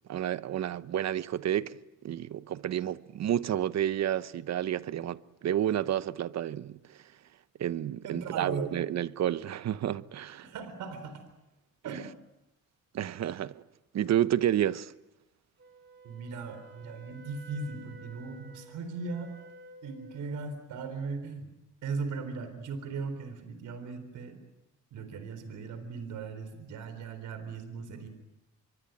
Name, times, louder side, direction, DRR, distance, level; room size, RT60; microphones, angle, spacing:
voice 1, 0.1-1.8 2.0-7.0 7.6-10.5 11.9-12.0 12.9-13.6 13.9-14.9, right 11 dB, 60° right, 1.0 m, -30 dB
voice 2, 8.0-8.6 10.4-11.2 11.8-12.1 16.0-19.3 19.8-21.5 21.8-24.4 24.9-28.1, right 4 dB, 80° right, 4.1 m, -38 dB
Wind instrument woodwind instrument, 15.6-20.3, right 3 dB, 40° right, 3.3 m, -52 dB
26.5 x 23.0 x 9.1 m
cardioid pair, 90°, 30 cm